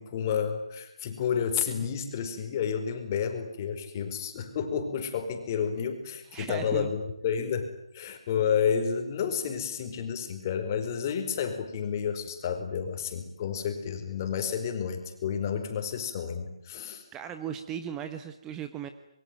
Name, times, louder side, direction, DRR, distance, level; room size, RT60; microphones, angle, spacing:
voice 1, 0.0-7.7 7.9-17.0, left 7 dB, 30° left, 7 dB, 4.7 m, -30 dB
voice 2, 6.3-6.9 17.1-18.9, right 9 dB, 15° right, 9 dB, 1.1 m, -37 dB
26.0 x 23.0 x 9.4 m, 0.75 s
figure-of-eight pair, 155°, 3 cm